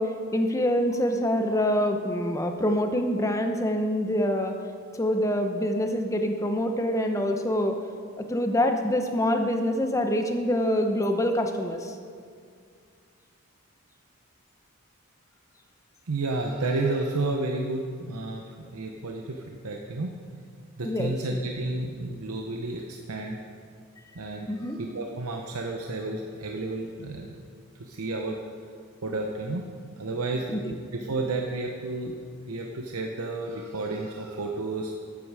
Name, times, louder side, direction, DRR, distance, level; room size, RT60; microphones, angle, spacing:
voice 1, 0.0-4.6 5.0-7.8 8.2-12.0 20.8-21.4 24.5-24.8 30.5-30.7, equal, 15° left, 5 dB, 0.7 m, -25 dB
voice 2, 16.1-20.1 20.8-23.4 24.1-28.4 29.0-29.7 30.0-30.5 30.9-32.2 32.5-35.0, right 2 dB, 90° right, 2 dB, 0.8 m, -31 dB
13.0 x 8.4 x 4.8 m, 2.2 s
head